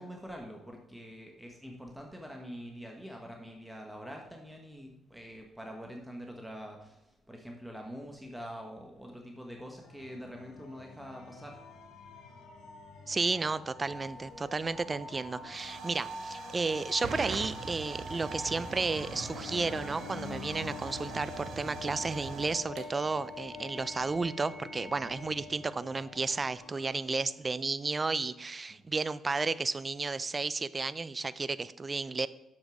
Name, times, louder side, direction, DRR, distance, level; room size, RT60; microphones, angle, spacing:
voice 1, 0.0-11.6 28.7-28.8, equal, 5° right, 1 dB, 1.2 m, -45 dB
sound 1, 9.8-27.3, left 2 dB, 90° left, 1.5 m, -46 dB
voice 2, 13.1-32.3, right 3 dB, 30° right, 16 dB, 0.3 m, -33 dB
Hiss / Fire / Tick, 13.9-24.3, right 4 dB, 75° right, 1.1 m, -44 dB
7.2 x 6.3 x 5.0 m, 0.93 s
cardioid pair, 90°, 0 cm